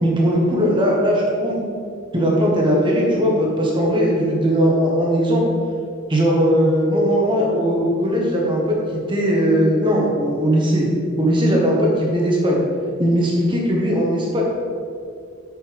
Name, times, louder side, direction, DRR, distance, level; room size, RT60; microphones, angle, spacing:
voice 1, 0.0-1.6 2.1-5.4 6.1-10.9 11.2-12.6 13.0-14.4, equal, 25° right, -3 dB, 1.5 m, -18 dB
8.4 x 7.1 x 3.6 m, 2.3 s
head